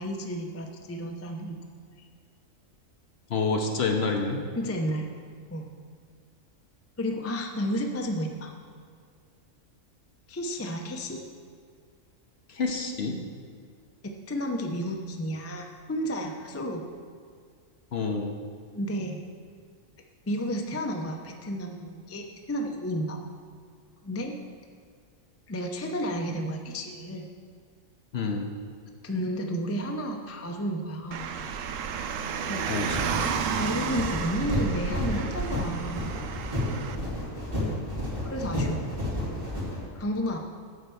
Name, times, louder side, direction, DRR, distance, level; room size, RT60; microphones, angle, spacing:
voice 1, 0.0-1.6 4.6-5.1 5.5-5.7 7.0-8.5 10.3-11.2 14.3-16.8 18.7-19.2 20.3-23.2 24.0-24.3 25.5-27.3 29.0-31.3 32.5-32.7 33.6-36.1 38.2-38.9 40.0-40.4, equal, 20° left, 2 dB, 0.4 m, -32 dB
voice 2, 3.3-4.4 12.5-13.2 17.9-18.4 28.1-28.5 32.7-32.9, left 4 dB, 55° left, 3 dB, 1.1 m, -28 dB
Car, 31.1-37.0, right 6 dB, 80° right, 1.0 m, -32 dB
sound 1, 32.9-39.9, left 1 dB, 45° right, 2.8 m, -32 dB
9.9 x 4.5 x 6.9 m, 2.1 s
omnidirectional pair, 1.4 m